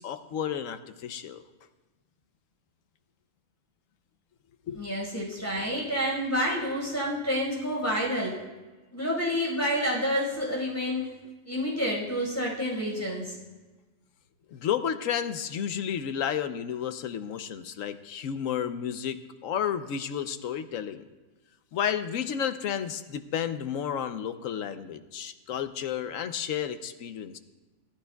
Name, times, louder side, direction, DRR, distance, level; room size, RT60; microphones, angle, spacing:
voice 1, 0.0-1.4 4.7-4.9 14.5-21.0 21.7-27.4, left 8 dB, 80° left, 10 dB, 1.1 m, -32 dB
voice 2, 4.7-8.4 8.9-11.1 11.5-13.4, equal, 10° left, -5 dB, 4.9 m, -29 dB
17.5 x 14.5 x 2.3 m, 1.2 s
omnidirectional pair, 1.4 m